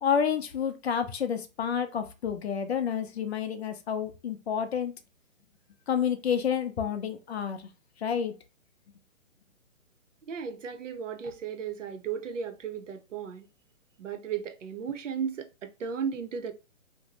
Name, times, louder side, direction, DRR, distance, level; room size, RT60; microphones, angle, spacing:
voice 1, 0.0-4.9 5.9-7.6 8.0-8.3, left 7 dB, 50° left, 0.5 m, -29 dB
voice 2, 10.3-13.5 14.0-16.5, right 7 dB, 65° right, 0.6 m, -35 dB
2.6 x 2.1 x 2.8 m
figure-of-eight pair, 135°, 40 cm